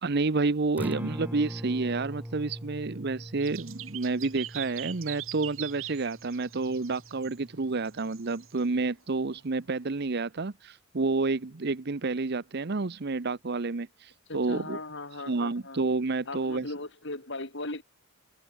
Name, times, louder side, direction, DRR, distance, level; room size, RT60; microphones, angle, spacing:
voice 1, 0.0-14.8 15.3-16.7, right 3 dB, 55° right, 0.8 m, -29 dB
Acoustic guitar, 0.7-8.8, equal, 10° right, 2.0 m, -42 dB
sound 1, 3.4-7.4 7.8-8.6, right 14 dB, 90° right, 4.8 m, -42 dB
voice 2, 14.3-15.8 16.3-17.8, left 2 dB, 60° left, 5.6 m, -38 dB
head